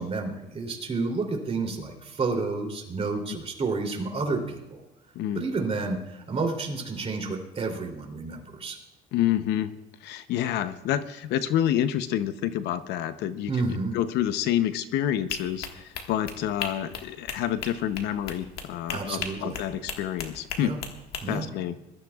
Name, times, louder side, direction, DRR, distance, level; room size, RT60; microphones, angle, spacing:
voice 1, 0.0-4.8 5.3-8.8 13.5-14.0 18.9-19.6 20.6-20.8 21.2-21.5, right 3 dB, 35° right, 2 dB, 3.1 m, -30 dB
voice 2, 5.1-5.5 9.1-9.8 10.0-13.5 13.9-20.8 21.3-21.7, left 11 dB, 85° left, 12 dB, 0.7 m, -28 dB
sound 1, 15.3-21.2, left 6 dB, 70° left, 1.6 m, -37 dB
22.5 x 13.0 x 2.4 m, 0.96 s
cardioid pair, 110°, 17 cm